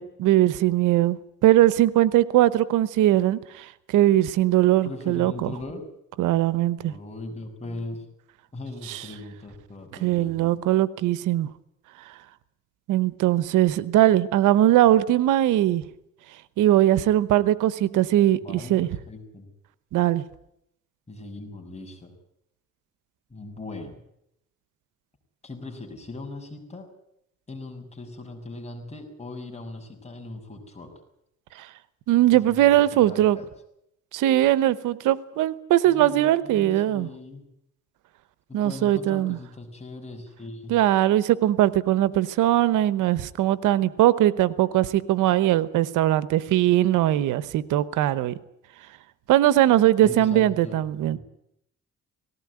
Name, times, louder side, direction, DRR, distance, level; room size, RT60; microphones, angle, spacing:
voice 1, 0.0-5.5 6.2-6.9 8.9-9.0 10.0-11.5 12.9-15.8 16.6-18.9 19.9-20.2 31.6-31.7 32.1-33.4 34.1-37.1 38.5-39.4 40.7-48.3 49.3-51.2, right 13 dB, 90° right, 17 dB, 1.0 m, -20 dB
voice 2, 4.8-5.8 6.8-8.0 8.5-10.5 18.3-19.5 21.1-22.1 23.3-24.0 25.4-26.9 27.5-30.9 32.3-33.5 35.9-37.4 38.5-40.8 50.0-51.2, left 2 dB, 20° left, 3 dB, 6.4 m, -39 dB
19.0 x 17.0 x 9.7 m, 0.77 s
cardioid pair, 90°, 30 cm